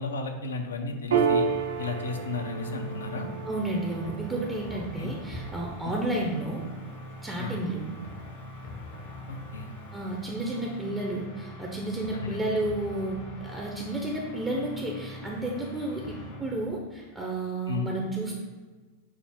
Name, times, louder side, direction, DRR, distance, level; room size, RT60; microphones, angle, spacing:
voice 1, 0.0-1.5 1.8-3.3 4.7-5.1 5.8-6.0 7.4-7.6 9.3-9.7 12.1-12.5 17.7-17.9, left 3 dB, 70° left, 4 dB, 0.4 m, -34 dB
sound 1, 1.1-16.7, left 1 dB, 50° left, 0.8 m, -43 dB
Piano, 1.1-8.0, right 6 dB, 65° right, 0.3 m, -32 dB
voice 2, 3.5-6.6 7.2-7.8 9.9-16.1 16.4-18.3, right 2 dB, 10° right, -2 dB, 0.5 m, -31 dB
5.7 x 2.0 x 3.4 m, 1.3 s
figure-of-eight pair, 90°, 0 cm